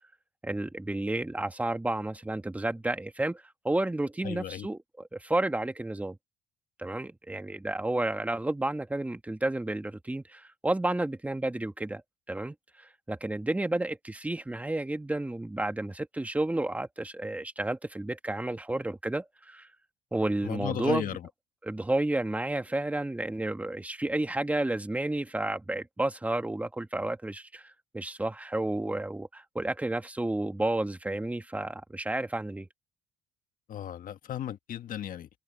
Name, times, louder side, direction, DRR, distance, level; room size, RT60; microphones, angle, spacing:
voice 1, 0.4-4.8 5.1-6.2 6.8-12.0 12.3-19.7 20.1-21.1 21.7-32.7, right 2 dB, 10° right, 1.6 m, -31 dB
voice 2, 4.2-4.7 20.4-21.3 33.7-35.3, left 10 dB, 55° left, 1.5 m, -35 dB
cardioid pair, 110°, 17 cm